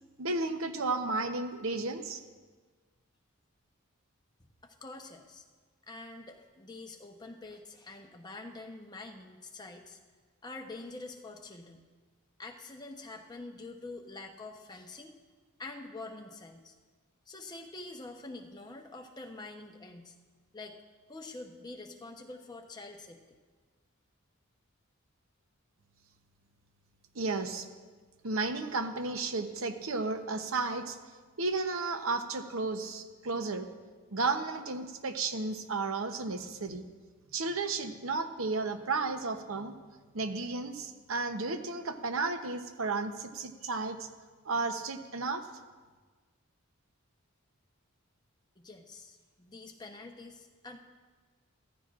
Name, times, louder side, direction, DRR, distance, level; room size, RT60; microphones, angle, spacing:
voice 1, 0.2-2.2 27.1-27.7 28.2-31.0 31.4-33.7 34.1-36.8 37.3-39.7 40.1-44.1 44.4-45.5, right 3 dB, 70° right, 8 dB, 0.8 m, -33 dB
voice 2, 4.6-5.4 5.9-10.0 10.4-11.8 12.4-15.1 15.6-16.7 17.3-20.1 20.5-20.8 21.1-23.4 48.6-50.8, left 2 dB, 20° left, 2 dB, 0.9 m, -46 dB
14.5 x 14.5 x 2.5 m, 1.4 s
head